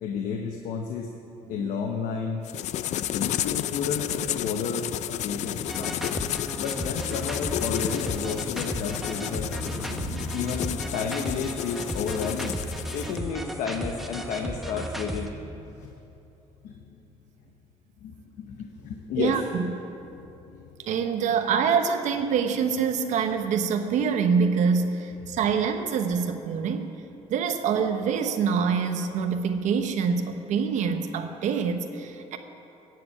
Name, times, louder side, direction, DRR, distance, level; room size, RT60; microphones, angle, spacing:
voice 1, 0.0-1.1 1.5-2.4 2.9-6.0 6.6-12.6 12.9-15.4 15.7-15.9 16.6-17.0 18.0-19.4 20.0-20.9 25.3-25.4, left 6 dB, 80° left, 3 dB, 1.0 m, -32 dB
sound 1, 2.4-13.2, left 12 dB, 65° left, 0.4 m, -32 dB
sound 2, 5.6-15.3, right 1 dB, ahead, 1.0 m, -35 dB
voice 2, 9.9-10.2 19.2-19.6 20.8-26.9 27.3-32.4, right 6 dB, 70° right, 6 dB, 1.0 m, -25 dB
14.5 x 7.7 x 8.5 m, 2.9 s
cardioid pair, 105°, 13 cm